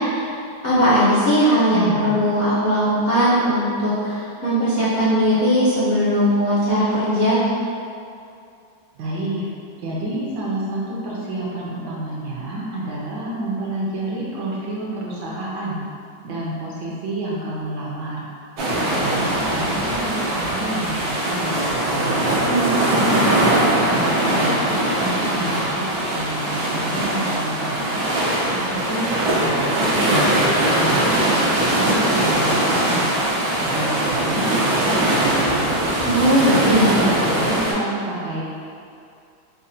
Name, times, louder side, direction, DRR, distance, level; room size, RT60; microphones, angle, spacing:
voice 1, 0.6-7.4 22.5-22.7 23.1-23.4 36.0-37.0, equal, 65° left, -11 dB, 0.6 m, -19 dB
voice 2, 1.7-2.2 8.9-9.4 9.8-15.8 16.2-18.3 18.7-22.2 22.9-28.0 28.5-30.2 30.6-31.4 31.8-33.1 33.6-35.7 36.4-38.4, right 1 dB, 70° right, -5 dB, 1.2 m, -28 dB
sound 1, 18.6-37.7, right 1 dB, 90° right, 1.6 m, -21 dB
5.2 x 2.1 x 2.7 m, 2.4 s
omnidirectional pair, 2.1 m